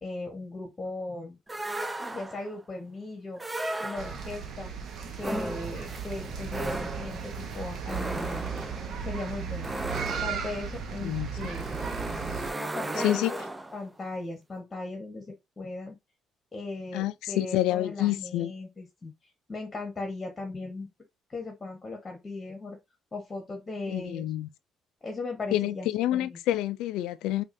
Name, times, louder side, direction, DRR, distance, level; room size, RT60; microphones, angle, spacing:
voice 1, 0.0-1.4 2.1-3.4 3.8-4.7 5.2-8.4 9.0-9.7 10.2-11.7 12.6-13.4 13.7-16.0 16.5-19.1 19.5-20.9 21.3-22.8 23.1-24.3 25.0-26.4, left 2 dB, 25° left, 1.2 m, -37 dB
sound 1, 1.5-2.6 3.4-4.4 5.2-13.9, right 1 dB, 15° right, 0.4 m, -36 dB
sound 2, 4.0-12.5, right 6 dB, 60° right, 0.8 m, -36 dB
voice 2, 13.0-13.3 16.9-18.5 23.9-24.5 25.5-27.4, left 14 dB, 90° left, 0.3 m, -28 dB
4.7 x 2.4 x 2.6 m
cardioid pair, 95°, 0 cm